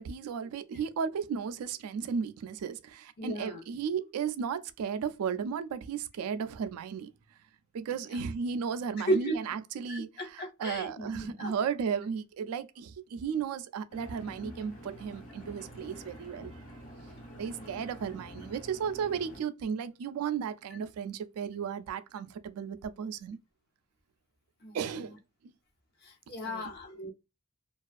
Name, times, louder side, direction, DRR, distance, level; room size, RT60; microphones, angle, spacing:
voice 1, 0.0-7.1 7.7-16.5 17.4-23.4 24.7-25.2 25.4-25.5 26.4-26.6, right 6 dB, 85° right, 0.3 m, -35 dB
voice 2, 3.2-3.6 9.0-9.4 9.9-11.5 17.5-17.8 24.6-24.7 26.0-27.1, right 1 dB, 45° left, 0.6 m, -34 dB
Engine, 13.9-19.4, equal, 70° left, 1.0 m, -47 dB
2.4 x 2.3 x 2.3 m
head